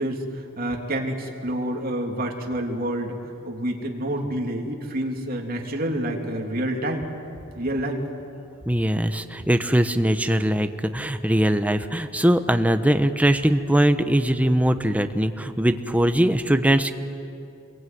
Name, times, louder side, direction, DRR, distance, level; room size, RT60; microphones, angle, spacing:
voice 1, 0.0-7.1 7.5-8.0, right 1 dB, 50° right, 1 dB, 3.2 m, -28 dB
voice 2, 8.7-16.9, right 1 dB, 10° right, 8 dB, 1.1 m, -21 dB
28.0 x 22.5 x 9.5 m, 2.7 s
head